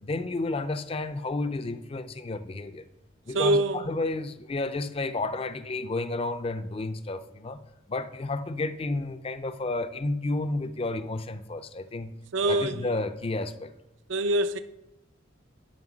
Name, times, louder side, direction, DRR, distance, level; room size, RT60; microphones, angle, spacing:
voice 1, 0.0-2.8 3.3-7.6 7.9-12.1 12.5-13.7, left 2 dB, 30° left, 0.4 m, -31 dB
voice 2, 3.3-3.9 12.3-13.0 14.1-14.6, right 2 dB, 70° right, 0.5 m, -25 dB
9.3 x 5.7 x 6.1 m
head